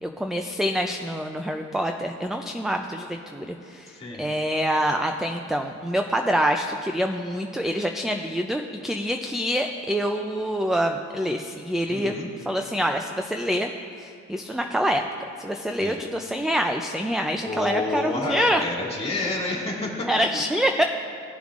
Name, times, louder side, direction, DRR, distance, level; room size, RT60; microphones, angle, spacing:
voice 1, 0.0-3.9 4.2-12.1 12.5-13.7 14.0-15.0 15.4-18.6 20.1-20.8, equal, ahead, 5 dB, 0.4 m, -26 dB
voice 2, 3.9-4.3 11.9-12.3 15.8-16.0 17.4-20.1, left 2 dB, 20° left, -3 dB, 2.2 m, -29 dB
16.5 x 7.0 x 2.5 m, 2.6 s
cardioid pair, 90°, 30 cm